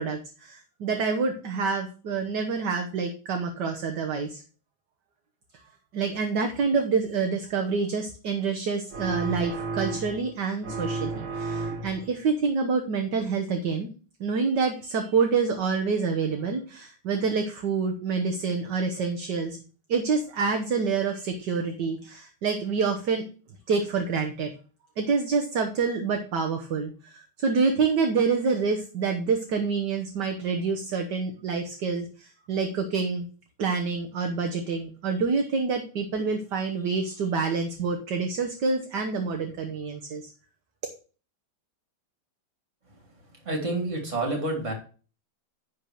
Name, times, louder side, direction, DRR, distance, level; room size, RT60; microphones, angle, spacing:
voice 1, 0.0-4.4 5.9-13.9 14.2-19.6 19.9-23.2 23.7-24.5 25.0-33.3 33.6-40.3, right 5 dB, 60° right, 4 dB, 1.6 m, -27 dB
sound 1, 8.9-10.3 10.6-12.1, right 3 dB, 85° right, 2.4 m, -32 dB
voice 2, 43.4-44.7, right 2 dB, 35° right, 3 dB, 3.0 m, -28 dB
10.0 x 4.5 x 6.4 m, 0.37 s
omnidirectional pair, 2.2 m